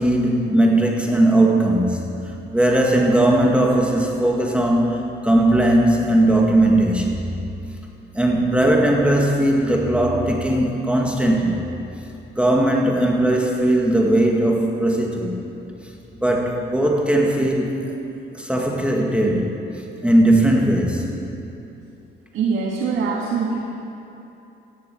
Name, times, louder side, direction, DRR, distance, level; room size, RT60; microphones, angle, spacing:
voice 1, 0.0-7.2 8.1-11.7 12.4-15.4 16.2-17.9 18.3-19.5 20.0-21.1, right 1 dB, 5° right, -1 dB, 2.0 m, -18 dB
voice 2, 22.3-23.6, right 5 dB, 85° right, -2 dB, 1.8 m, -23 dB
14.0 x 11.0 x 8.6 m, 2.9 s
cardioid pair, 90°, 20 cm